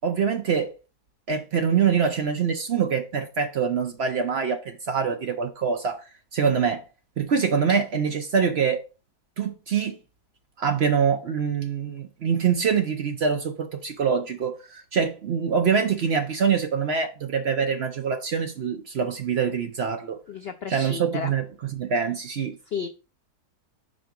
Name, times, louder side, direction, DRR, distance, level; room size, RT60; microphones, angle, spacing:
voice 1, 0.0-0.7 1.3-6.0 6.3-6.8 7.2-8.8 9.4-10.0 10.6-20.2 20.7-22.6, right 6 dB, 55° right, 0.7 m, -24 dB
voice 2, 20.3-21.3 22.7-22.9, left 6 dB, 75° left, 0.5 m, -32 dB
5.2 x 3.9 x 4.7 m
omnidirectional pair, 1.7 m